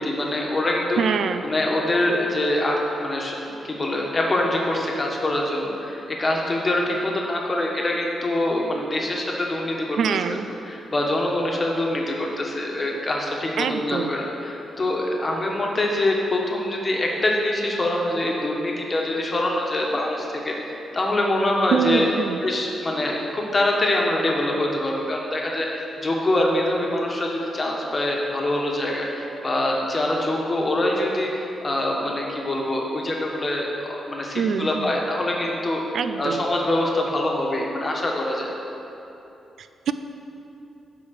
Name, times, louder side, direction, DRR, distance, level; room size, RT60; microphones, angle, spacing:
voice 1, 0.0-1.0 1.4-3.4 3.6-10.0 10.7-22.1 22.4-35.8 36.2-38.5, left 1 dB, 25° left, -1 dB, 1.4 m, -24 dB
voice 2, 1.0-1.4 10.0-10.5 13.6-14.2 21.7-22.4 34.3-35.0 35.9-36.4 39.6-39.9, right 7 dB, 70° right, 10 dB, 0.4 m, -25 dB
11.5 x 5.0 x 6.5 m, 2.9 s
wide cardioid pair, 145°, 0 cm